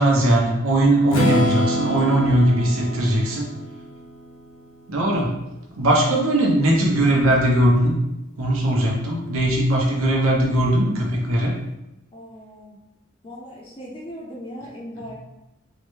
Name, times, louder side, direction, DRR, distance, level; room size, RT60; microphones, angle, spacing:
voice 1, 0.0-3.5 4.9-5.3 5.7-8.0 8.4-11.5, right 1 dB, 85° right, -2 dB, 0.9 m, -19 dB
Strum, 1.1-5.0, equal, 70° left, 0.7 m, -26 dB
voice 2, 5.9-6.7 12.1-12.8 13.2-15.1, equal, 25° left, -3 dB, 0.5 m, -39 dB
3.8 x 2.2 x 3.1 m, 0.90 s
head